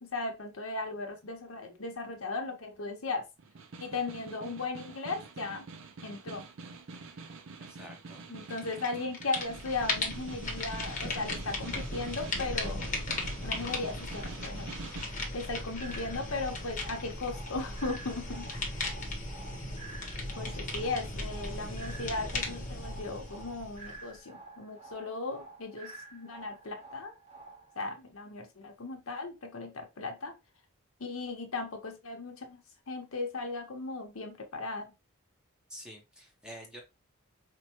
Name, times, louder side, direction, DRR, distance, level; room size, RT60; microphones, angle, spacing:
voice 1, 0.0-3.2 3.8-5.7 6.0-6.4 8.3-12.9 13.4-14.7 15.0-18.8 19.8-20.1 20.3-27.1 27.8-30.3 31.0-32.6 32.9-34.9, left 3 dB, 75° left, 0.9 m, -37 dB
Snare drum, 3.4-15.2, right 4 dB, 65° right, 0.5 m, -46 dB
voice 2, 7.6-8.2 20.5-20.8 35.7-36.8, equal, 5° right, 0.7 m, -48 dB
sound 1, 8.5-8.9 9.1-24.2, left 2 dB, 35° left, 0.8 m, -37 dB
sound 2, 15.8-27.8, right 3 dB, 30° right, 0.9 m, -50 dB
4.4 x 2.1 x 2.8 m
head